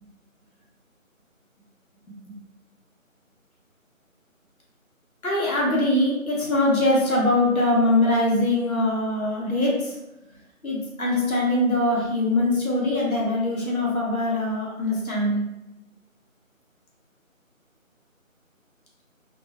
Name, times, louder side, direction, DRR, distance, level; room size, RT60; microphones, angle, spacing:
voice 1, 5.2-9.9 10.6-15.4, left 1 dB, 85° left, -4 dB, 1.4 m, -22 dB
3.6 x 2.1 x 2.6 m, 0.94 s
figure-of-eight pair, 175°, 41 cm